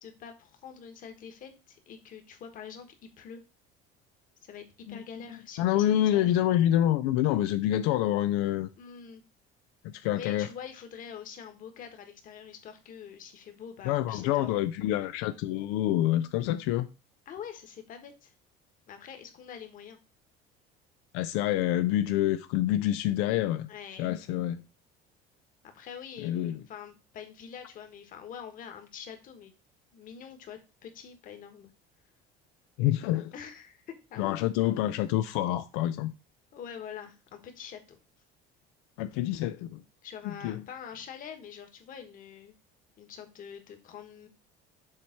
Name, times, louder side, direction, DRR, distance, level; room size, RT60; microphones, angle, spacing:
voice 1, 0.0-3.4 4.4-6.3 8.8-9.2 10.1-14.5 17.3-18.3 18.9-20.0 23.7-24.1 25.6-29.5 29.9-31.7 33.3-34.4 36.5-38.0 40.0-42.5 43.0-44.3, left 7 dB, 45° left, 1.4 m, -45 dB
voice 2, 5.6-8.7 9.8-10.5 13.9-16.9 21.1-23.7 24.0-24.6 26.2-26.6 32.8-33.3 34.2-36.1 39.0-39.8 40.2-40.6, left 13 dB, 90° left, 0.5 m, -27 dB
7.2 x 3.2 x 5.8 m
cardioid pair, 150°, 20 cm